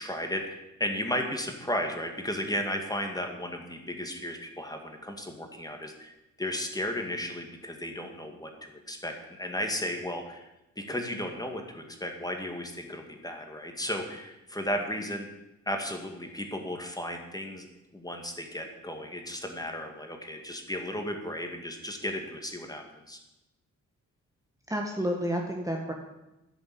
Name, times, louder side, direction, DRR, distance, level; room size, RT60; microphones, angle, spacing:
voice 1, 0.0-10.5 10.8-15.3 15.7-23.2, left 1 dB, 15° left, 3 dB, 2.2 m, -34 dB
voice 2, 24.7-25.9, equal, 10° right, 1 dB, 1.6 m, -30 dB
10.5 x 7.1 x 8.6 m, 0.95 s
cardioid pair, 70°, 29 cm